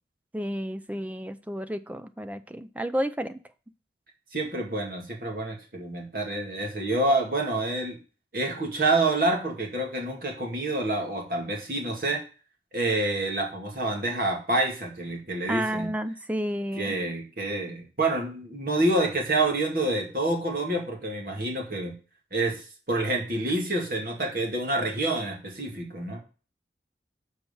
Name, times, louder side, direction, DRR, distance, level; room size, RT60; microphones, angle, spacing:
voice 1, 0.3-3.4 15.5-17.0, equal, 10° right, 11 dB, 0.4 m, -31 dB
voice 2, 4.3-8.0 8.3-12.2 12.7-15.9 16.7-22.0 22.3-26.2, right 2 dB, 55° right, 0 dB, 2.1 m, -27 dB
6.9 x 4.7 x 5.4 m, 0.36 s
head